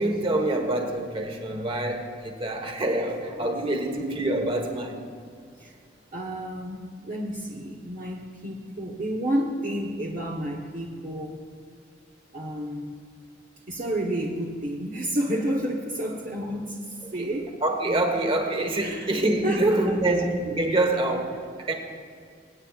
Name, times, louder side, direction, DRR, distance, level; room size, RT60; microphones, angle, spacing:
voice 1, 0.0-5.1 17.2-17.3 17.6-21.7, right 1 dB, 30° right, 3 dB, 1.3 m, -26 dB
voice 2, 6.1-11.4 12.3-13.0 13.7-17.6 18.8-19.1 19.4-20.1, right 1 dB, 45° right, -2 dB, 1.0 m, -30 dB
24.5 x 9.0 x 2.4 m, 2.2 s
head